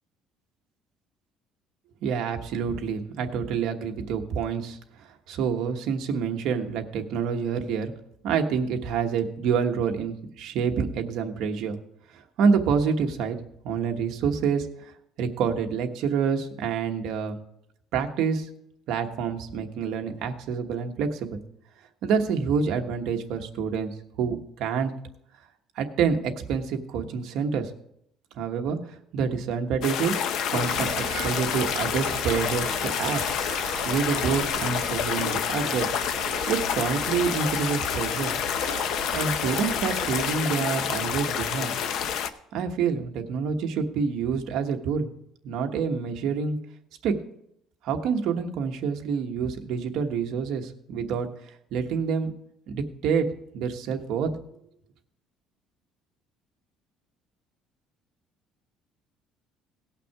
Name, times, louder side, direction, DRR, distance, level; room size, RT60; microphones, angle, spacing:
voice 1, 2.0-7.9 8.2-11.8 12.1-13.4 13.6-14.9 15.2-17.4 17.9-18.5 18.9-21.4 22.0-24.9 25.7-27.7 28.4-30.2 30.5-33.2 33.8-35.9 36.5-38.3 39.1-41.7 42.5-45.1 45.4-46.6 47.0-47.1 47.8-51.3 51.7-52.3 52.7-53.3 53.5-54.3, right 6 dB, 60° right, 4 dB, 1.2 m, -27 dB
sound 1, 29.8-42.3, left 8 dB, 55° left, 0.7 m, -28 dB
Screaming, 30.5-40.4, right 9 dB, 90° right, 0.9 m, -40 dB
17.5 x 5.9 x 4.7 m, 0.74 s
cardioid pair, 165°, 0 cm